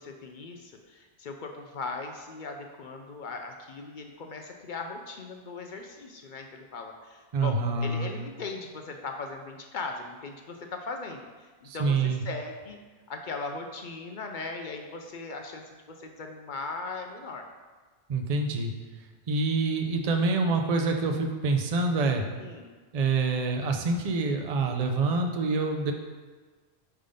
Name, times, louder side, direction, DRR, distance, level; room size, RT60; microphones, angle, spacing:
voice 1, 0.0-12.8 13.1-17.4 22.4-22.7, left 3 dB, 60° left, 3 dB, 0.6 m, -39 dB
voice 2, 7.3-8.1 11.6-12.2 18.1-18.7 19.3-22.2 22.9-25.9, right 3 dB, 45° right, 3 dB, 0.6 m, -26 dB
5.5 x 3.5 x 5.1 m, 1.4 s
omnidirectional pair, 1.1 m